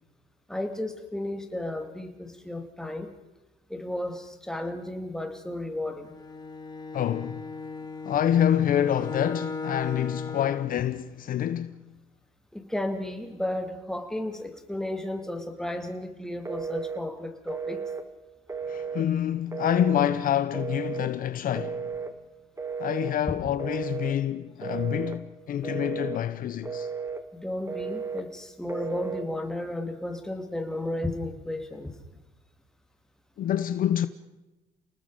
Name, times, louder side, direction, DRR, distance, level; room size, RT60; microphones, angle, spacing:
voice 1, 0.5-3.1 3.7-6.1 12.5-17.8 27.3-31.9, left 1 dB, 5° left, 2.8 m, -33 dB
Bowed string instrument, 6.0-10.8, left 3 dB, 25° left, 2.6 m, -37 dB
voice 2, 6.9-7.4 8.0-11.8 18.7-21.9 22.8-26.9 33.4-34.1, left 10 dB, 55° left, 0.9 m, -27 dB
Telephone, 16.5-17.0 17.5-18.0 18.5-19.1 19.5-20.1 20.5-21.1 21.6-22.1 22.6-23.1 23.6-24.2 24.6-25.2 25.6-26.2 26.6-27.2 27.7-28.2 28.7-29.3, right 5 dB, 15° right, 1.9 m, -34 dB
29.5 x 19.5 x 5.1 m
cardioid pair, 110°, 17 cm